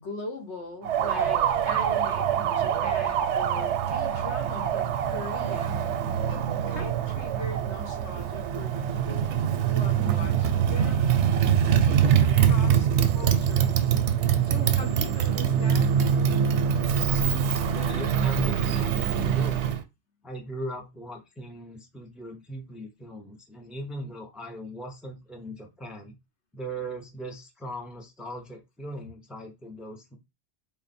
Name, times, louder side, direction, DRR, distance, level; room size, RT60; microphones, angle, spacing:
voice 1, 0.0-6.4 6.7-11.1 11.5-13.9 14.4-15.9, left 3 dB, 85° left, 1.2 m, -41 dB
Motorcycle, 0.8-19.8, right 8 dB, 90° right, 0.9 m, -24 dB
voice 2, 17.7-19.0 19.2-19.7 20.2-26.1 26.5-30.2, right 1 dB, ahead, 0.6 m, -38 dB
3.8 x 2.0 x 4.1 m
omnidirectional pair, 1.1 m